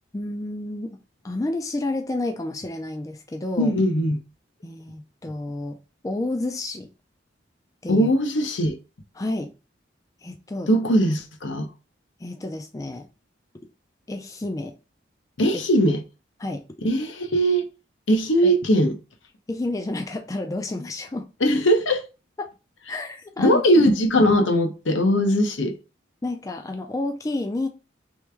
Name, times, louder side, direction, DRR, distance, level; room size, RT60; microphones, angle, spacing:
voice 1, 0.1-1.0 1.2-3.7 4.6-6.9 7.8-8.1 9.1-9.5 10.2-10.7 12.2-13.1 14.1-14.8 15.5-15.6 16.4-16.7 18.4-18.5 19.5-21.3 22.4-22.5 22.9-23.6 26.2-27.7, left 2 dB, 15° left, 0.3 m, -30 dB
voice 2, 3.6-4.2 7.9-8.8 10.7-11.7 15.4-16.0 16.8-17.7 18.1-19.0 21.4-22.0 23.4-25.7, equal, 80° left, 0.8 m, -20 dB
3.4 x 3.2 x 3.3 m
head